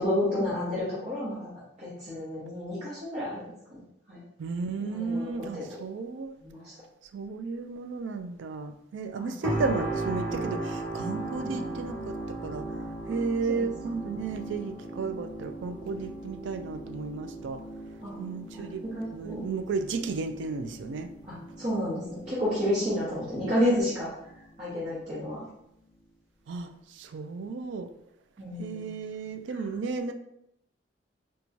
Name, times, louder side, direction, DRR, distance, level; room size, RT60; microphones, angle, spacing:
voice 1, 0.0-1.5 1.8-3.8 4.1-4.2 4.8-5.7 6.4-6.7 9.1-9.3 11.4-11.6 13.2-13.7 18.0-18.2 18.5-19.4 21.3-24.1 24.6-25.5 28.4-28.8, left 1 dB, 40° right, -10 dB, 1.1 m, -31 dB
voice 2, 4.4-6.4 7.1-17.6 18.2-18.8 19.1-21.1 26.5-27.9 28.6-30.1, right 4 dB, 85° right, 8 dB, 0.4 m, -33 dB
sound 1, 9.4-24.4 24.9-25.1, right 2 dB, 10° left, 1.1 m, -38 dB
4.3 x 2.3 x 2.6 m, 0.78 s
head